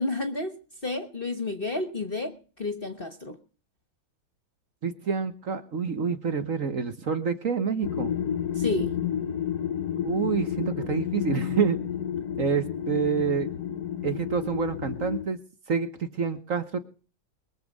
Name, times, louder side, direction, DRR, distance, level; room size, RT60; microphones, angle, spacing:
voice 1, 0.0-3.4 8.5-9.0, left 2 dB, 35° left, 9 dB, 1.1 m, -31 dB
voice 2, 4.8-8.1 10.0-11.8 12.4-13.5 14.0-15.4 15.7-16.8, right 6 dB, 45° right, 10 dB, 1.4 m, -27 dB
sound 1, 7.8-15.3, left 9 dB, 60° left, 1.2 m, -31 dB
22.5 x 7.6 x 5.3 m, 0.39 s
omnidirectional pair, 2.1 m